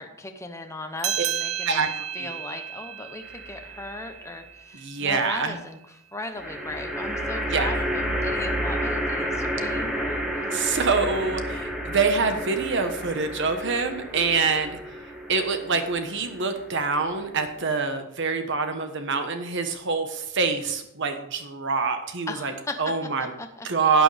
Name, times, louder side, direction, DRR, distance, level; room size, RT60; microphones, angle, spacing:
voice 1, 0.0-1.9 2.1-5.8 6.1-10.6 22.3-22.8 23.4-23.7, left 2 dB, 15° left, 5 dB, 0.7 m, -37 dB
sound 1, 1.0-5.9, right 10 dB, 90° right, 0.6 m, -34 dB
sound 2, 3.2-3.9 6.3-17.7, equal, 5° right, 1.5 m, -31 dB
voice 2, 4.7-5.6 7.5-7.7 10.5-14.7 15.3-22.5 22.8-23.3 23.6-24.0, right 4 dB, 60° right, 7 dB, 1.2 m, -25 dB
12.5 x 9.1 x 3.4 m, 0.81 s
head